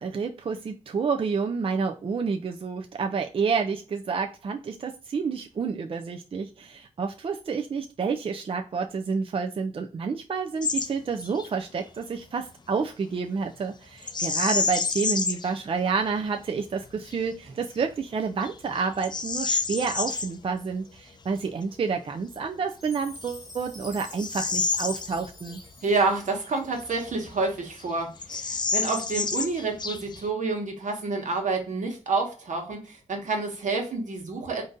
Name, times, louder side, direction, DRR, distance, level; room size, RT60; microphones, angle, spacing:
voice 1, 0.0-25.6, right 5 dB, 45° right, 4 dB, 0.4 m, -29 dB
Bird vocalization bird call bird song, 10.6-10.9 11.2-11.5 14.0-15.5 16.1-16.2 16.8-17.2 17.8-17.9 18.4-20.3 22.4-22.5 23.2-25.6 25.9-26.0 26.7-27.5 27.8-27.9 28.2-30.3, left 4 dB, 35° left, 0.4 m, -29 dB
Chime, 22.8-27.0, left 1 dB, ahead, 1.2 m, -47 dB
voice 2, 25.8-34.6, right 3 dB, 75° right, 1 dB, 1.2 m, -28 dB
3.9 x 2.6 x 3.6 m, 0.37 s
wide cardioid pair, 85°, 13 cm